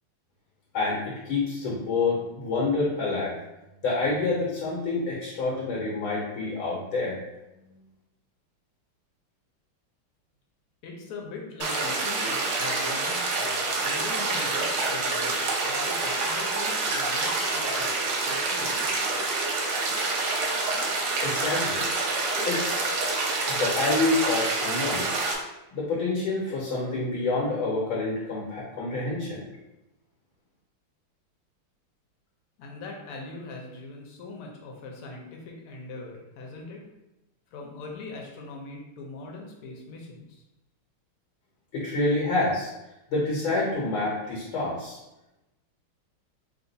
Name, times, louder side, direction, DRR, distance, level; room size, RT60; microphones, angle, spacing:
voice 1, 0.7-3.3 3.8-7.2 21.2-21.8 22.4-22.9 23.5-25.1 25.7-29.5 41.7-42.7 43.1-45.0, left 3 dB, 70° left, -5 dB, 1.8 m, -27 dB
voice 2, 10.8-17.9 18.2-18.9 32.6-36.8 37.5-40.4, left 3 dB, 85° left, 0 dB, 1.7 m, -41 dB
sound 1, 11.6-25.4, right 3 dB, 90° right, 1.7 m, -27 dB
4.1 x 2.5 x 4.0 m, 0.93 s
omnidirectional pair, 2.4 m